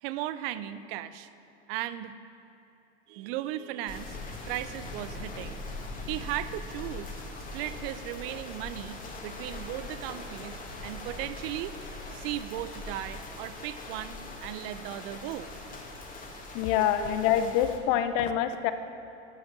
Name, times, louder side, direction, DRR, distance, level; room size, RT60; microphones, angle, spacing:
voice 1, 0.0-1.3 1.7-2.1 3.1-4.2 4.4-5.6 6.1-7.2 7.5-10.5 10.8-11.7 12.1-15.5 16.7-17.2, right 13 dB, 60° right, 14 dB, 0.6 m, -36 dB
sound 1, 3.9-17.8, left 2 dB, 25° left, 1.7 m, -41 dB
voice 2, 16.5-18.7, left 10 dB, 55° left, 10 dB, 0.8 m, -26 dB
9.0 x 8.7 x 6.1 m, 2.9 s
hypercardioid pair, 95°, 34 cm